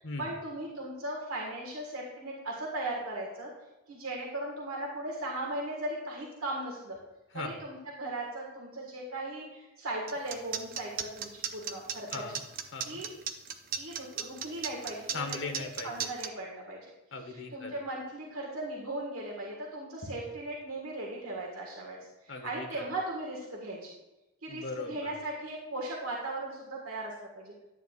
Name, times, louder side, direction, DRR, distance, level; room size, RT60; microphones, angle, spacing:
voice 1, 0.2-3.5 3.9-7.0 7.3-12.2 12.9-13.1 13.8-15.2 15.8-16.8 17.5-22.0 22.2-23.9 24.4-27.5, right 1 dB, 75° right, -2 dB, 1.9 m, -37 dB
sound 1, 10.1-16.3, right 7 dB, 40° right, 0.6 m, -35 dB
voice 2, 12.1-12.4 12.7-13.0 15.1-16.1 17.1-17.8 22.3-22.9 24.5-25.1, left 3 dB, 55° left, 4 dB, 1.2 m, -39 dB
10.5 x 9.1 x 2.5 m, 1.0 s
head